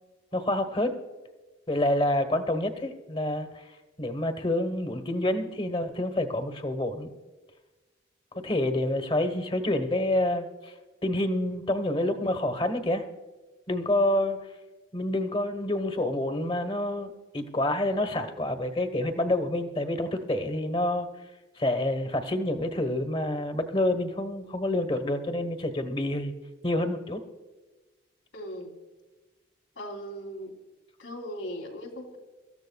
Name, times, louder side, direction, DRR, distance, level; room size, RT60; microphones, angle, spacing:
voice 1, 0.3-1.0 1.7-3.7 4.0-7.1 8.4-10.7 11.0-13.0 13.7-14.4 14.9-21.1 21.6-26.3 26.6-27.2, left 1 dB, 30° left, 8 dB, 1.2 m, -28 dB
voice 2, 28.3-28.7 29.7-30.5 31.0-32.2, equal, 85° left, 0 dB, 3.3 m, -38 dB
24.5 x 14.5 x 2.3 m, 1.2 s
head